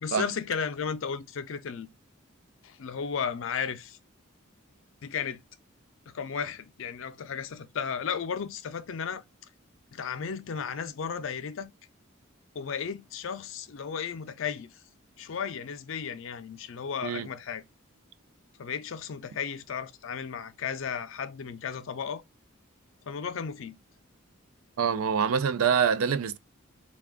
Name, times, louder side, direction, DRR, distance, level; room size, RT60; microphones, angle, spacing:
voice 1, 0.0-1.9 2.6-4.0 5.0-5.4 6.1-9.2 9.9-11.7 12.6-14.7 15.2-17.6 18.6-22.2 23.0-23.8, left 6 dB, 70° left, 0.4 m, -34 dB
voice 2, 24.8-26.4, right 7 dB, 85° right, 0.4 m, -25 dB
3.4 x 2.3 x 3.5 m
head